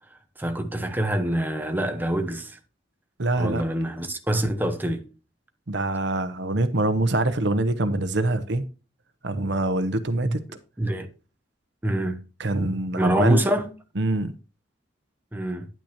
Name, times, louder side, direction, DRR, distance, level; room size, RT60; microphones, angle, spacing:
voice 1, 0.4-2.6 3.4-5.1 10.2-10.4 10.8-11.1 11.8-12.2 12.9-13.7 15.3-15.7, right 1 dB, 10° right, 0.9 m, -25 dB
voice 2, 3.2-3.6 5.7-8.7 9.2-10.4 12.4-13.4 14.0-14.3, right 2 dB, 65° right, 0.8 m, -24 dB
10.0 x 9.1 x 2.9 m
head